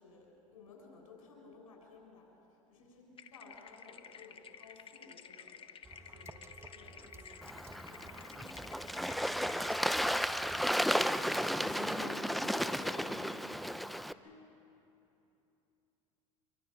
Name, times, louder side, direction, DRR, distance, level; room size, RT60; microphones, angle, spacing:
voice 1, 0.0-6.4 6.7-10.5 14.2-14.5, left 3 dB, 85° left, -1 dB, 7.1 m, -58 dB
sound 1, 3.2-9.9, left 7 dB, 30° left, 1.3 m, -53 dB
sound 2, 5.8-12.0, right 3 dB, 15° right, 1.2 m, -54 dB
Bird / Water, 7.4-14.1, equal, ahead, 0.7 m, -33 dB
voice 2, 11.3-13.4, left 3 dB, 60° left, -2 dB, 5.1 m, -49 dB
27.0 x 23.0 x 6.7 m, 2.8 s
hypercardioid pair, 90°, 18 cm